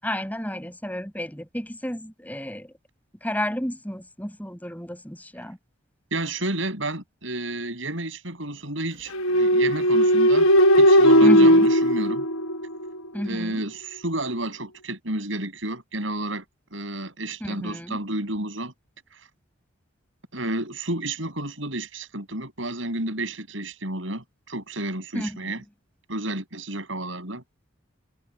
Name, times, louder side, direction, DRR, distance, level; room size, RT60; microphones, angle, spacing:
voice 1, 0.0-2.7 3.2-5.6 11.2-11.7 13.1-13.6 17.4-18.0 25.1-25.6, equal, 10° left, 7.2 m, -31 dB
voice 2, 6.1-10.5 10.8-12.3 13.2-16.4 16.7-18.7 19.1-19.2 20.3-25.6 26.1-27.4, right 2 dB, 70° right, 7.8 m, -31 dB
sound 1, 9.1-13.0, equal, 85° left, 1.2 m, -17 dB
head